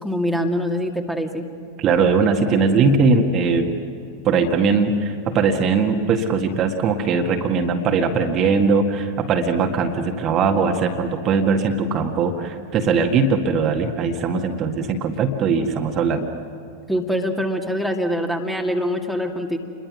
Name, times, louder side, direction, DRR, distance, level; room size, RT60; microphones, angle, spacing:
voice 1, 0.0-1.4 16.9-19.6, equal, ahead, 3 dB, 2.3 m, -24 dB
voice 2, 1.8-3.7 4.2-16.3, right 4 dB, 30° right, 3 dB, 1.9 m, -20 dB
29.0 x 22.5 x 6.2 m, 2.7 s
figure-of-eight pair, 90°, 0 cm